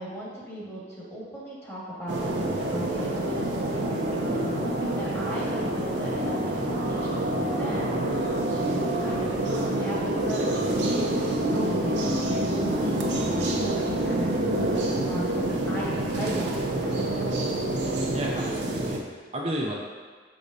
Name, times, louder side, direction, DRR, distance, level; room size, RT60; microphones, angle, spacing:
voice 1, 0.0-12.0 12.2-14.4 15.1-17.4, equal, 15° left, -7 dB, 1.6 m, -37 dB
sound 1, 2.1-19.0, right 1 dB, 75° right, 0.8 m, -27 dB
voice 2, 18.1-19.7, right 1 dB, 35° right, -2 dB, 0.5 m, -33 dB
7.2 x 4.9 x 2.7 m, 1.5 s
head